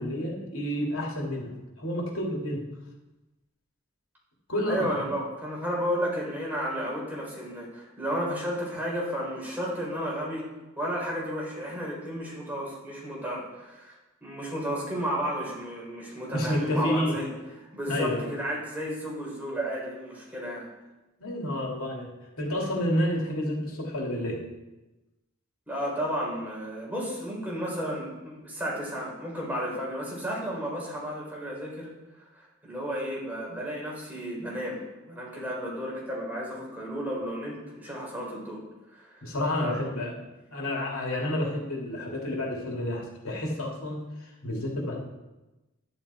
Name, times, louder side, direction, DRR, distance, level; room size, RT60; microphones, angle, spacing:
voice 1, 0.0-1.5 1.8-2.6 4.5-5.1 16.3-17.1 17.9-18.3 21.2-22.1 22.4-24.4 39.2-40.1 40.5-45.0, left 1 dB, 90° left, -2 dB, 2.7 m, -30 dB
voice 2, 4.7-10.5 10.8-17.3 17.7-20.7 25.7-31.9 32.3-38.6 38.9-39.3 39.6-39.7, equal, 10° right, -4 dB, 4.0 m, -33 dB
11.5 x 10.5 x 4.4 m, 1.1 s
head